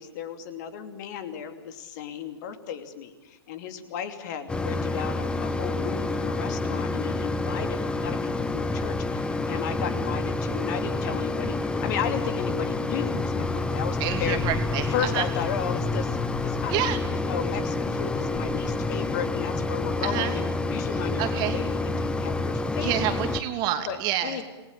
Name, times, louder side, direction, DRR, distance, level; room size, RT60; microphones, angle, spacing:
voice 1, 0.0-14.4 14.7-16.8 17.2-23.0 23.9-24.0 24.2-24.4, left 8 dB, 40° left, 9 dB, 2.9 m, -34 dB
Mechanisms, 4.5-23.4, left 3 dB, 5° left, 1.3 m, -28 dB
voice 2, 14.0-15.3 16.7-17.0 20.0-20.4 21.2-21.6 22.8-24.4, right 12 dB, 30° right, 8 dB, 2.7 m, -28 dB
28.5 x 20.0 x 8.9 m, 1.2 s
figure-of-eight pair, 115°, 14 cm